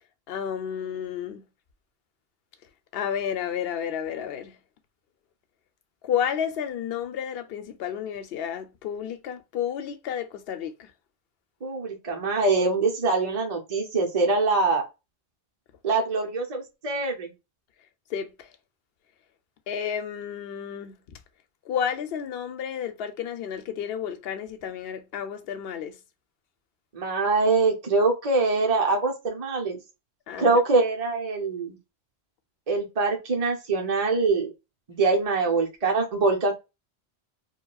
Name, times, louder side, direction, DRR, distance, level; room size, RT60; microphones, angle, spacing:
voice 1, 0.3-1.4 2.9-4.6 6.0-10.9 18.1-18.5 19.7-20.9 21.7-26.0 30.3-30.6, left 8 dB, 70° left, 0.8 m, -31 dB
voice 2, 11.6-14.8 15.8-17.3 26.9-29.8 30.4-31.8 32.7-34.5 34.9-36.5, right 3 dB, 40° right, 0.8 m, -24 dB
4.8 x 2.2 x 2.3 m
omnidirectional pair, 1.1 m